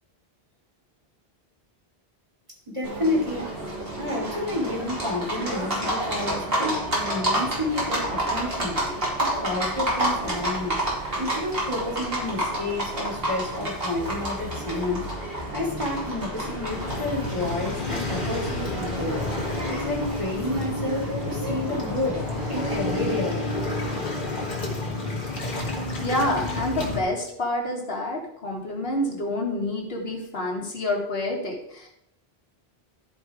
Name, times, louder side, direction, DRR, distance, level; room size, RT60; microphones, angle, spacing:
voice 1, 2.7-3.6 4.0-10.8 11.2-15.1 15.5-19.3 19.7-23.6, left 2 dB, 30° right, -3 dB, 2.8 m, -30 dB
Livestock farm animals working animals, 2.8-22.8, right 1 dB, 70° right, 3.1 m, -30 dB
Waves surf, 16.7-27.0, left 2 dB, 55° left, 2.0 m, -30 dB
voice 2, 26.0-31.9, left 1 dB, 75° left, 0 dB, 2.1 m, -28 dB
13.0 x 4.9 x 4.9 m, 0.76 s
omnidirectional pair, 1.0 m